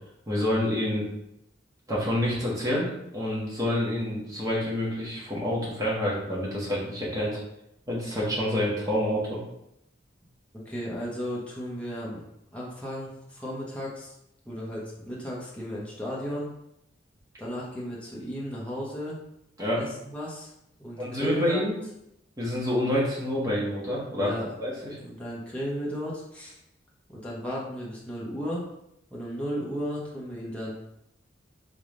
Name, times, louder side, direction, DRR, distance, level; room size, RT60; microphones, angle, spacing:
voice 1, 0.3-1.1 1.9-7.4 7.9-9.4 19.6-19.8 21.0-21.7 22.4-24.3 24.6-25.0, left 1 dB, 20° right, -6 dB, 1.4 m, -28 dB
voice 2, 10.5-12.2 12.5-14.1 14.4-16.5 17.4-19.2 19.7-21.6 24.2-24.5 25.0-26.6 27.1-28.6 29.1-30.7, equal, 5° left, -6 dB, 1.0 m, -34 dB
3.8 x 3.6 x 3.7 m, 0.80 s
head